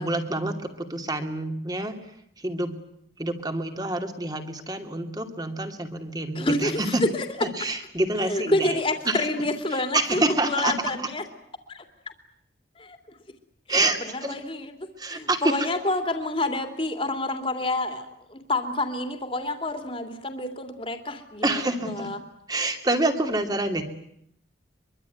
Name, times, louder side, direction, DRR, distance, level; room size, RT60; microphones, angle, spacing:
voice 1, 0.0-1.9 2.4-2.7 3.2-7.0 7.4-8.8 9.0-9.3 9.9-10.7 13.7-14.4 15.0-15.6 21.4-22.1 22.5-23.8, right 2 dB, 20° right, 5 dB, 2.6 m, -27 dB
voice 2, 6.3-7.3 8.2-11.2 11.7-11.8 12.8-13.0 13.7-22.2, left 2 dB, 30° left, 5 dB, 2.8 m, -28 dB
24.0 x 23.5 x 9.4 m, 0.72 s
head